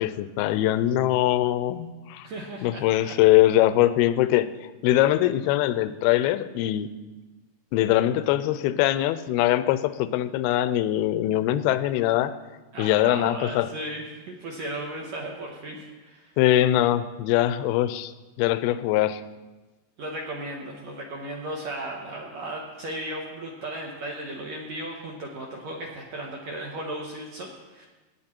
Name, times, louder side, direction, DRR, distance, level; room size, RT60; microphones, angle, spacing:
voice 1, 0.0-2.3 2.6-4.5 4.8-6.9 7.7-12.3 12.8-13.7 16.4-18.1 18.4-19.2, left 14 dB, 85° left, 13 dB, 2.4 m, -22 dB
voice 2, 2.2-3.2 12.7-16.3 20.0-27.9, right 1 dB, 65° right, -1 dB, 1.8 m, -36 dB
18.0 x 9.0 x 4.5 m, 1.2 s
omnidirectional pair, 4.6 m